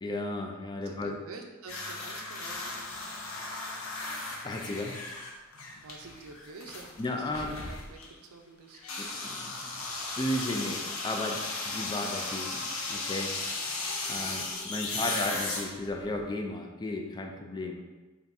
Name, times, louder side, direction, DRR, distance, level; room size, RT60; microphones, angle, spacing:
voice 1, 0.0-1.2 4.4-5.0 7.0-7.8 9.0-9.8 10.2-13.3 13.6-13.8 14.1-17.8, left 1 dB, 20° left, 2 dB, 0.4 m, -34 dB
voice 2, 0.7-3.0 5.8-8.8 14.1-14.4 14.8-15.1, right 4 dB, 85° right, 3 dB, 0.5 m, -49 dB
sound 1, 1.7-8.1 8.7-16.2, left 3 dB, 75° left, 0.6 m, -36 dB
3.4 x 2.6 x 4.0 m, 1.3 s
head